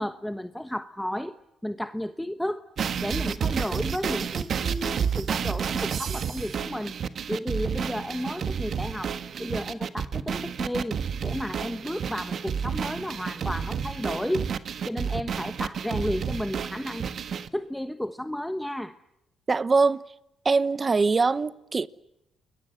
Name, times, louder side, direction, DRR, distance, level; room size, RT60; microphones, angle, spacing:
voice 1, 0.0-1.4 1.6-2.6 3.0-6.9 7.3-9.1 9.4-14.5 14.8-17.1 17.5-19.0, left 1 dB, 5° left, 1.2 m, -32 dB
sound 1, 2.8-17.5, right 7 dB, 55° right, 1.4 m, -30 dB
voice 2, 19.5-20.0 20.4-21.9, right 4 dB, 30° right, 1.1 m, -22 dB
29.0 x 22.0 x 8.0 m
cardioid pair, 90°, 0 cm